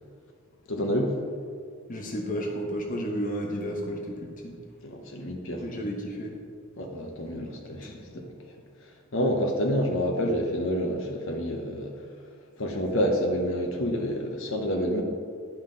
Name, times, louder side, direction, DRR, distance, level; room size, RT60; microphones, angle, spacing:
voice 1, 0.7-1.1 4.8-5.6 6.8-8.2 9.1-11.9 12.6-15.0, equal, 65° left, 1 dB, 1.0 m, -28 dB
voice 2, 1.9-4.5 5.6-6.3 7.4-8.2, equal, 40° left, 0 dB, 0.9 m, -33 dB
10.5 x 5.8 x 3.9 m, 2.2 s
head